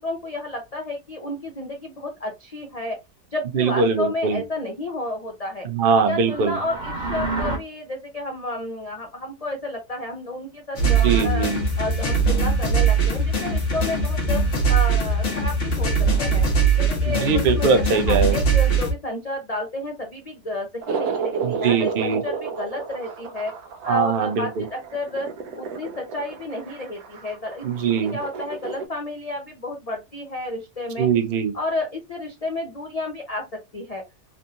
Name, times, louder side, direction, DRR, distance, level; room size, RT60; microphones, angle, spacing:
voice 1, 0.0-3.0 3.3-5.7 6.1-11.5 11.8-14.4 14.7-15.9 16.2-16.4 16.7-17.7 18.1-23.5 23.8-25.3 25.6-27.7 28.1-31.1 31.5-33.4 33.7-34.0, left 1 dB, 70° left, 0.3 m, -31 dB
voice 2, 3.5-4.4 5.6-6.6 10.8-11.6 17.1-18.4 21.4-22.2 23.9-24.6 27.6-28.2 31.0-31.5, right 5 dB, 60° right, 0.5 m, -22 dB
sound 1, 6.2-7.6, right 3 dB, 30° right, 1.0 m, -28 dB
sound 2, 10.8-18.9, right 4 dB, 50° left, 1.2 m, -21 dB
sound 3, 20.8-28.9, right 6 dB, 80° right, 1.1 m, -31 dB
3.5 x 2.8 x 2.4 m
omnidirectional pair, 1.7 m